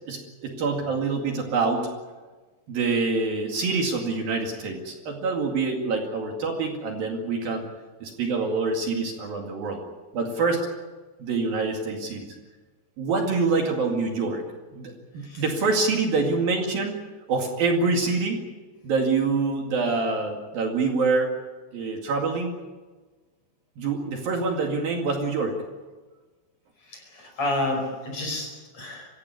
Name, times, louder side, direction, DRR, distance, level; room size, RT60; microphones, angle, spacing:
voice 1, 0.1-1.9 2.7-7.7 8.0-9.8 10.1-10.7 11.2-12.4 13.0-14.4 14.7-17.0 17.3-18.4 18.8-21.3 21.7-22.5 23.8-25.5, right 4 dB, 55° right, 2 dB, 3.8 m, -26 dB
voice 2, 26.9-29.1, left 1 dB, 40° left, 3 dB, 6.3 m, -30 dB
25.5 x 16.0 x 9.6 m, 1.3 s
omnidirectional pair, 5.2 m